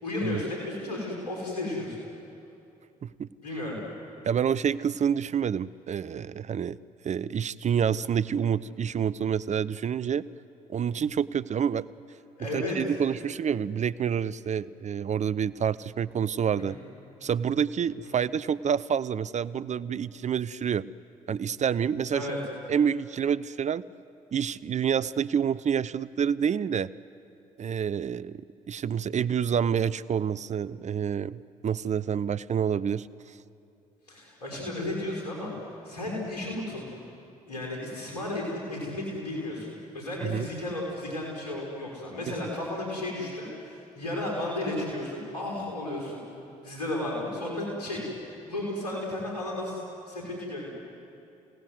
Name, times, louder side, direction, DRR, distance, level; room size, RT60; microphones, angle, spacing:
voice 1, 0.0-2.0 3.4-3.8 12.4-12.8 16.6-16.8 18.0-18.2 22.1-22.4 34.1-36.9 37.5-46.2 46.6-48.0 48.5-50.7, left 1 dB, 85° left, -1 dB, 5.7 m, -33 dB
voice 2, 4.2-6.8 7.0-10.2 10.7-11.8 12.5-16.8 17.2-20.8 21.3-22.3 22.7-23.8 24.3-26.9 27.6-28.4 28.7-33.3 40.2-40.4, right 8 dB, 40° right, 17 dB, 0.6 m, -28 dB
29.0 x 17.5 x 8.1 m, 2.7 s
hypercardioid pair, 45°, 19 cm